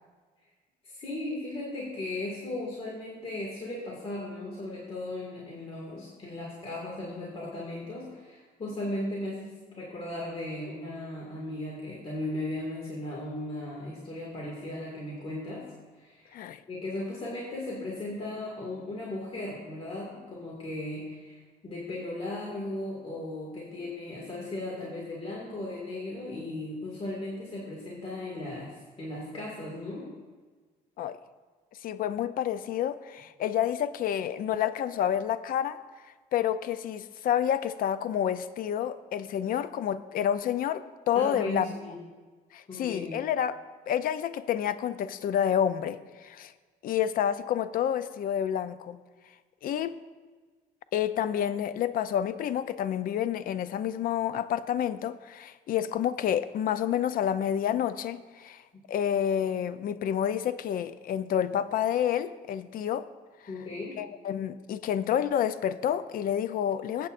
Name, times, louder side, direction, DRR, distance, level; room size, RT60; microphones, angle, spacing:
voice 1, 0.8-15.7 15.9-16.4 16.7-30.1 41.1-42.0 42.7-43.2 63.5-64.0, left 1 dB, 35° left, -4 dB, 2.2 m, -37 dB
voice 2, 31.8-35.8 36.3-41.7 42.5-43.6 43.9-46.5 46.8-49.0 49.6-50.0 50.9-58.6 58.9-63.1 64.0-67.1, left 9 dB, 60° left, 14 dB, 0.5 m, -29 dB
20.0 x 8.6 x 2.6 m, 1.4 s
cardioid pair, 110°, 17 cm